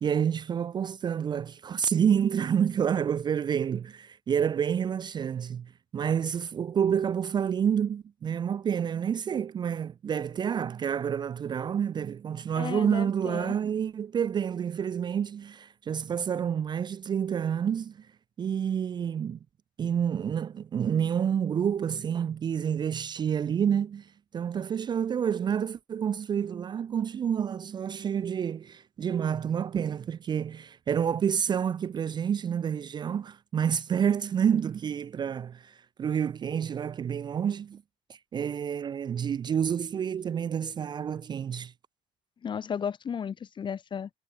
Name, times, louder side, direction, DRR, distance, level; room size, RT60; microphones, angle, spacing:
voice 1, 0.0-18.1 18.4-19.4 19.8-37.8 38.1-41.7, right 8 dB, 35° right, 0.4 m, -29 dB
voice 2, 12.6-13.6 42.4-44.1, left 7 dB, 35° left, 0.8 m, -34 dB
cardioid pair, 110°, 13 cm